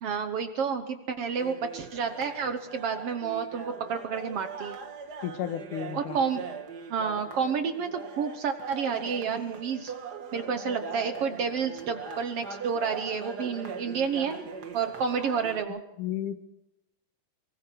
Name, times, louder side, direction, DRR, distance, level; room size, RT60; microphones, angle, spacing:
voice 1, 0.0-4.8 5.9-6.5 6.9-9.9 10.3-14.4 14.7-15.8, right 6 dB, 60° right, 8 dB, 1.7 m, -30 dB
sound 1, 1.4-15.6, right 5 dB, 40° right, 1.6 m, -41 dB
voice 2, 5.2-6.2 16.0-16.5, left 10 dB, 80° left, 9 dB, 2.7 m, -33 dB
24.0 x 24.0 x 4.6 m, 0.87 s
omnidirectional pair, 3.7 m